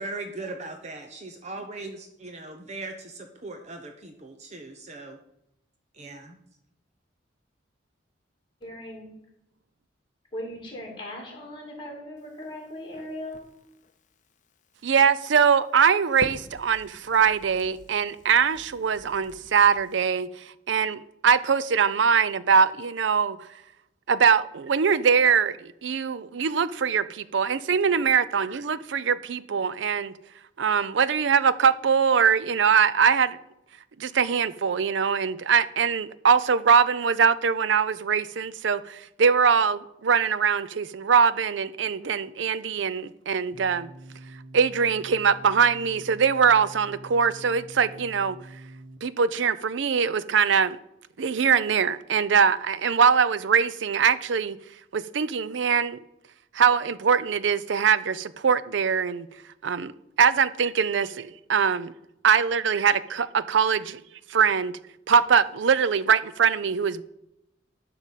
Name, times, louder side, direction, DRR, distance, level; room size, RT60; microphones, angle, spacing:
voice 1, 0.0-5.2 5.9-6.4, right 2 dB, 35° right, 0.8 m, -39 dB
voice 2, 8.6-9.1 10.3-13.4, left 1 dB, 25° left, 2.9 m, -38 dB
Crackle, 12.2-20.0, left 2 dB, 40° left, 0.7 m, -48 dB
voice 3, 14.8-23.4 24.1-30.1 30.6-33.4 34.0-43.9 44.5-48.4 49.0-50.8 51.2-54.6 54.9-56.0 56.5-59.3 59.6-61.9 62.2-64.0 64.3-64.7 65.1-67.0, right 6 dB, 70° right, 0.5 m, -22 dB
sound 1, 43.5-49.0, right 1 dB, 55° right, 1.4 m, -45 dB
11.5 x 3.9 x 7.2 m
head